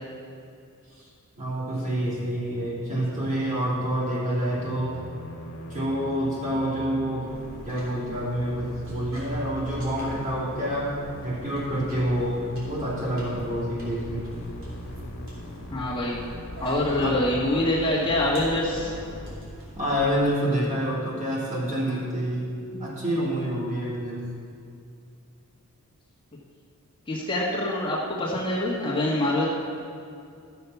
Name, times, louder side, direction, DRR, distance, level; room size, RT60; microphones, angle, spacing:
voice 1, 1.4-5.0 5.7-7.3 7.6-10.9 11.2-14.3 17.0-17.2 19.7-24.2, equal, 35° right, -7 dB, 3.1 m, -27 dB
Musical instrument, 4.5-19.3, equal, 60° left, 1.5 m, -41 dB
sound 1, 7.3-20.1, equal, 60° right, 3.1 m, -44 dB
voice 2, 15.7-16.2 16.6-18.9 27.1-29.5, left 1 dB, 25° left, -6 dB, 1.6 m, -25 dB
13.0 x 7.0 x 6.0 m, 2.4 s
head